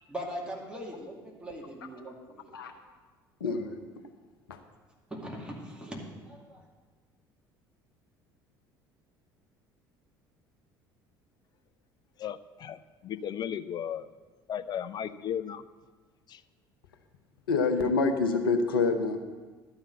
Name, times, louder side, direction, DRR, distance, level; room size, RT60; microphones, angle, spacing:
voice 1, 0.1-2.5 5.1-6.6, equal, 10° right, -2 dB, 2.4 m, -40 dB
voice 2, 3.4-3.8 4.5-4.6 17.5-19.2, left 4 dB, 75° left, 5 dB, 0.8 m, -26 dB
voice 3, 12.2-14.1 14.5-15.6 16.3-16.4, left 9 dB, 35° left, 11 dB, 0.5 m, -35 dB
12.0 x 5.7 x 8.1 m, 1.3 s
figure-of-eight pair, 60°, 12 cm